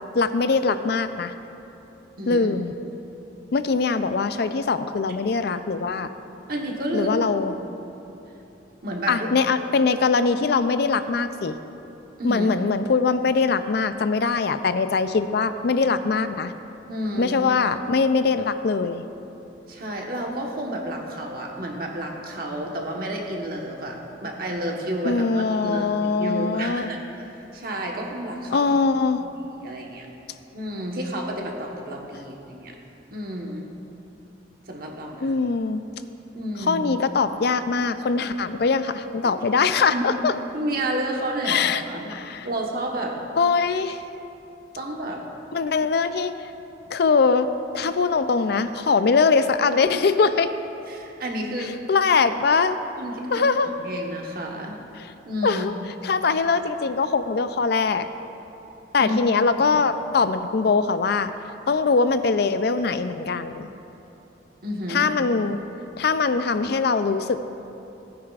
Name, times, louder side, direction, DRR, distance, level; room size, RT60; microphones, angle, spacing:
voice 1, 0.1-1.3 2.3-2.7 3.5-6.1 6.9-7.6 9.1-11.6 12.2-16.5 17.2-19.0 25.0-26.9 28.5-29.2 35.2-35.8 36.6-40.3 41.5-41.8 42.1-42.5 43.3-44.0 45.5-46.3 46.9-50.5 51.6-52.8 53.3-53.7 55.0-55.1 55.4-55.7 56.0-58.1 58.9-61.3 61.7-63.7 64.9-65.6 66.0-67.4, left 4 dB, 55° left, 11 dB, 0.4 m, -22 dB
voice 2, 2.2-2.5 6.5-7.2 7.5-7.6 8.8-9.3 12.2-12.5 16.9-17.4 19.7-27.0 27.5-28.7 29.2-30.1 30.5-32.8 33.1-33.7 34.7-35.3 36.3-36.8 39.2-39.3 39.9-40.3 40.5-42.1 42.4-43.2 44.7-45.2 50.9-51.7 53.0-53.5 53.8-54.8 55.2-55.7 59.0-59.2 64.6-65.1, right 1 dB, 50° right, 0 dB, 1.2 m, -30 dB
18.0 x 9.6 x 2.4 m, 2.9 s
head